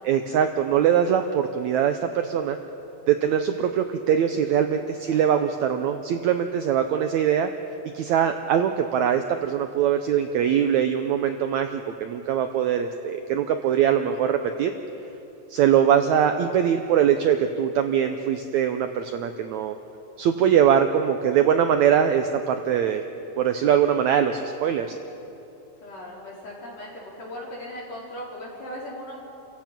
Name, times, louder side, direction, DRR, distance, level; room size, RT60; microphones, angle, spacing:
voice 1, 0.0-2.6 3.1-7.5 7.9-14.7 15.5-19.8 20.2-23.0 23.4-25.0, right 9 dB, 75° right, 7 dB, 1.7 m, -22 dB
voice 2, 25.8-26.9 27.2-29.2, left 1 dB, 50° left, -4 dB, 5.4 m, -38 dB
29.5 x 16.0 x 6.0 m, 2.9 s
omnidirectional pair, 4.0 m